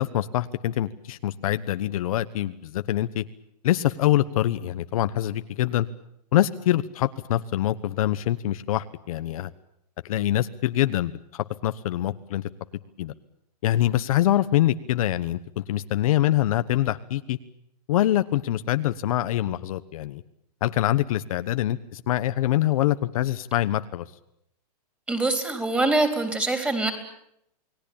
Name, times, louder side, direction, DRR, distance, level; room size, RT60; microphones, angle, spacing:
voice 1, 0.0-3.2 3.6-5.9 6.3-9.5 10.0-12.4 13.0-13.1 13.6-17.4 17.9-20.2 20.6-24.1, left 13 dB, 60° left, 10 dB, 1.2 m, -24 dB
voice 2, 25.1-26.9, right 2 dB, 5° right, 7 dB, 3.9 m, -24 dB
29.0 x 19.0 x 8.7 m, 0.75 s
hypercardioid pair, 155°, 21 cm